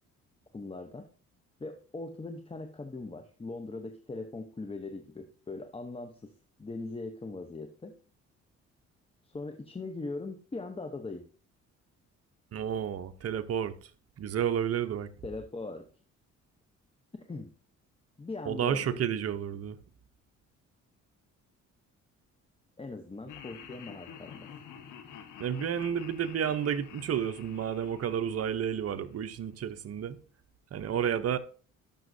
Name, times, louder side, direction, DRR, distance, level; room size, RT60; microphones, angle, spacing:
voice 1, 0.5-1.1 1.6-6.3 6.6-7.9 9.2-11.3 15.2-15.9 17.2-17.5 18.2-19.0 22.8-24.5, left 3 dB, 20° left, 0.8 m, -40 dB
voice 2, 12.5-13.9 14.2-15.1 18.5-19.8 25.4-30.2 30.7-31.4, right 8 dB, 50° right, 0.8 m, -31 dB
Laughter, 23.3-29.5, left 8 dB, 80° left, 1.3 m, -49 dB
12.5 x 6.1 x 2.7 m
cardioid pair, 90°, 30 cm